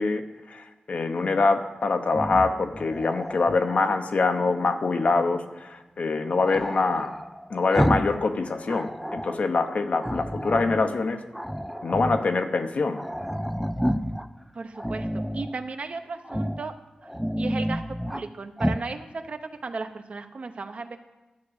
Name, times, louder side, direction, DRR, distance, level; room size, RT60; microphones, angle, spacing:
voice 1, 0.0-7.1 7.5-11.2 11.8-13.0, left 3 dB, 55° left, 7 dB, 0.8 m, -24 dB
Growling, 2.1-4.1 6.4-8.2 8.5-9.4 10.0-10.9 11.3-12.3 12.6-12.7 12.9-14.3 14.7-15.5 16.2-16.7 17.0-18.2 18.6-18.9, equal, ahead, 0.3 m, -30 dB
voice 2, 14.5-15.1 15.3-16.7 17.4-21.0, right 4 dB, 50° right, 7 dB, 0.8 m, -35 dB
11.5 x 5.9 x 7.9 m, 1.1 s
wide cardioid pair, 155°, 3 cm